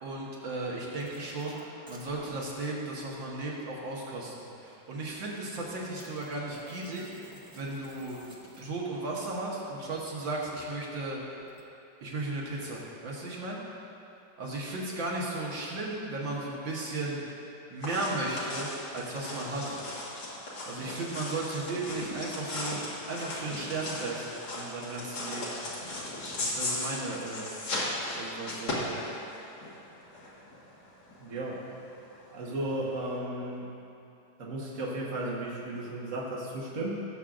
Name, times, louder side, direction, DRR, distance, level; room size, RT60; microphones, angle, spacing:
voice 1, 0.0-1.6 1.9-8.2 8.5-11.2 12.0-13.6 14.4-17.2 17.7-19.7 20.6-22.8 23.0-25.5 26.4-27.5 28.2-29.0, right 2 dB, 75° right, -4 dB, 2.1 m, -35 dB
sound 1, 1.0-2.4 5.9-8.9 11.4-11.6, right 1 dB, 25° right, 0.5 m, -51 dB
sound 2, 17.8-33.2, left 1 dB, 75° left, 2.4 m, -37 dB
voice 2, 31.2-31.7 32.3-33.7 34.4-36.9, right 1 dB, 45° right, -5 dB, 1.6 m, -34 dB
17.5 x 7.2 x 2.5 m, 2.7 s
omnidirectional pair, 2.1 m